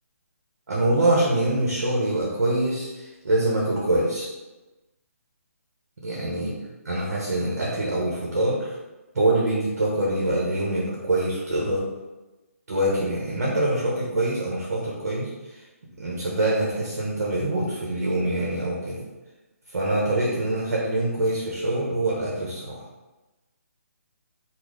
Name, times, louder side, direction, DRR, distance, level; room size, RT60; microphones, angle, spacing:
voice 1, 0.7-4.3 6.0-6.5 6.9-8.7 9.1-11.9 12.7-15.3 16.0-19.0 19.7-22.8, right 1 dB, 70° right, -4 dB, 0.9 m, -24 dB
3.0 x 2.1 x 3.8 m, 1.1 s
hypercardioid pair, 155°, 8 cm